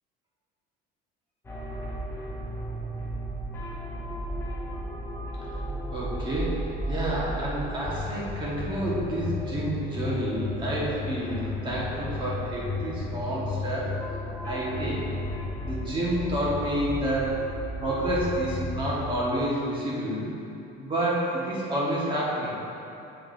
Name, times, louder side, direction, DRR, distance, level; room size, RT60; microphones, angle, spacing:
sound 1, 1.4-19.1, left 1 dB, 10° left, 0.9 m, -34 dB
voice 1, 5.9-6.6 6.9-14.0 14.5-15.1 15.6-17.4 17.8-20.3 20.8-22.5, right 1 dB, 25° right, -6 dB, 1.6 m, -29 dB
8.5 x 7.3 x 2.7 m, 3.0 s
cardioid pair, 160°, 21 cm